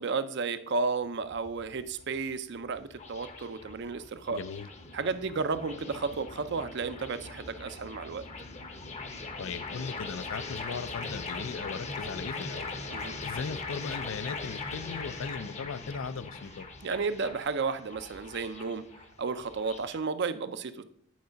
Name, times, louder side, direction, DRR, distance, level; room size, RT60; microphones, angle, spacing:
voice 1, 0.0-4.4 4.9-8.2 12.9-13.2 16.8-18.9 19.2-20.8, right 4 dB, 55° right, 0.5 m, -33 dB
sound 1, 1.0-20.0, left 3 dB, 30° left, 0.8 m, -41 dB
voice 2, 4.3-4.7 9.4-12.7 13.2-16.7, left 5 dB, 65° left, 0.4 m, -38 dB
9.4 x 4.7 x 5.2 m
head